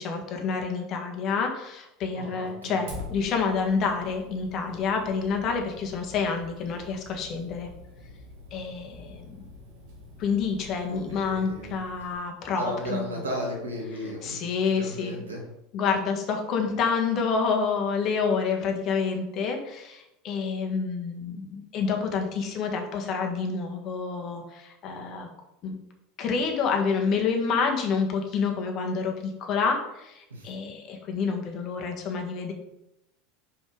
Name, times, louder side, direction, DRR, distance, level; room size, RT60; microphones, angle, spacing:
voice 1, 0.0-7.7 8.5-9.2 10.2-13.2 14.2-15.3 15.7-25.3 25.6-25.7 26.2-32.5, left 5 dB, 45° left, 3 dB, 1.7 m, -28 dB
voice 2, 2.1-2.8 10.9-11.7 12.6-14.4 14.7-15.4 30.3-30.5, equal, 85° right, 0 dB, 2.1 m, -35 dB
Fire, 2.9-12.1, left 2 dB, 70° right, 2.1 m, -45 dB
5.5 x 5.4 x 5.0 m, 0.85 s
hypercardioid pair, 80°, 0 cm